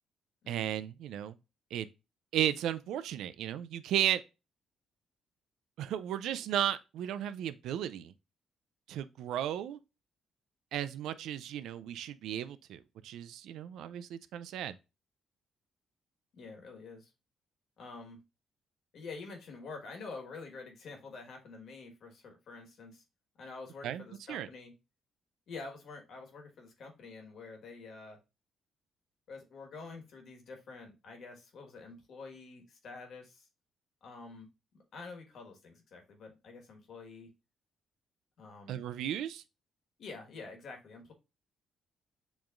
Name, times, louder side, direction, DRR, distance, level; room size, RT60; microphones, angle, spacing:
voice 1, 0.5-1.4 1.7-1.9 2.3-4.2 5.8-8.1 8.9-9.8 10.7-14.8 23.8-24.0 24.3-24.5 38.7-39.4, right 11 dB, 85° right, 0.3 m, -34 dB
voice 2, 16.3-17.1 17.8-18.2 18.9-23.0 23.4-24.7 25.5-28.2 29.3-33.5 34.0-34.5 34.9-37.3 38.4-38.8 40.0-41.1, left 4 dB, 65° left, 1.4 m, -47 dB
7.0 x 3.0 x 2.4 m
cardioid pair, 90°, 0 cm